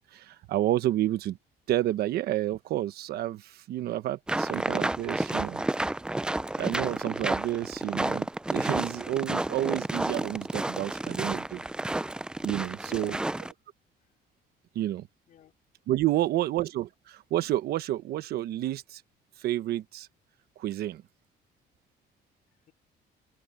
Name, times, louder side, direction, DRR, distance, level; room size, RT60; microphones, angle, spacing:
voice 1, 0.0-1.4 1.7-5.6 6.6-11.6 12.4-13.2 14.7-15.1 15.9-19.0 19.4-20.1 20.6-21.0, right 14 dB, 70° right, 1.1 m, -30 dB
sound 1, 4.3-13.5, right 2 dB, 5° right, 0.3 m, -31 dB
voice 2, 12.8-13.2 15.3-15.5 16.1-16.4 22.7-22.8, left 10 dB, 50° left, 4.3 m, -51 dB
open air
cardioid pair, 165°, 17 cm